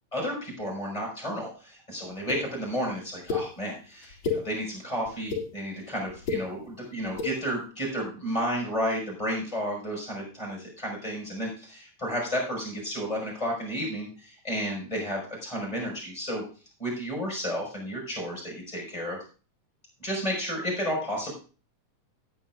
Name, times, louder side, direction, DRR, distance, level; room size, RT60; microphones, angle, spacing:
voice 1, 0.1-16.4 16.8-19.2 20.0-21.3, equal, 10° left, -2 dB, 5.5 m, -32 dB
sound 1, 2.3-2.4 3.3-3.4 4.0-4.4 5.1-5.4 6.1-6.4 7.1-7.3, left 5 dB, 50° left, 2.9 m, -28 dB
18.0 x 9.2 x 2.5 m, 0.36 s
omnidirectional pair, 3.3 m